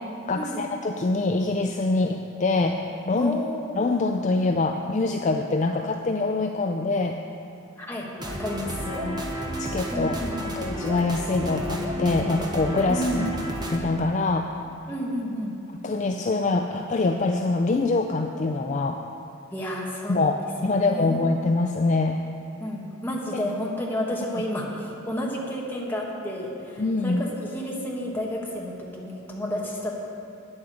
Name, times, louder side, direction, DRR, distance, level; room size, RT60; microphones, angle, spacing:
voice 1, 0.3-3.3 3.8-7.2 8.9-9.2 9.6-10.2 10.4-13.3 13.7-14.5 15.8-19.0 20.1-22.2 23.3-23.4 26.8-27.2, left 3 dB, 35° left, 4 dB, 0.4 m, -24 dB
voice 2, 3.1-3.8 7.8-8.8 9.9-10.5 12.9-13.3 14.9-15.5 19.5-21.3 22.6-29.9, equal, 10° left, -3 dB, 1.4 m, -31 dB
sound 1, 8.2-13.8, equal, 20° right, 1.0 m, -31 dB
9.2 x 8.8 x 6.9 m, 2.6 s
head